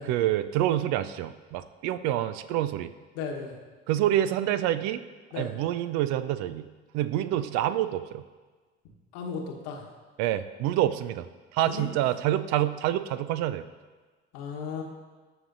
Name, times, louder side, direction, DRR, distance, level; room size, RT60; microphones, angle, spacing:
voice 1, 0.0-2.9 3.9-5.0 5.4-6.7 6.9-8.2 10.2-11.3 11.5-13.6, right 12 dB, 55° right, 13 dB, 0.5 m, -27 dB
voice 2, 3.1-3.5 5.3-5.5 9.1-9.9 11.7-11.9 14.3-14.8, left 5 dB, 65° left, 1 dB, 1.3 m, -35 dB
14.0 x 6.1 x 2.6 m, 1.4 s
hypercardioid pair, 60°, 33 cm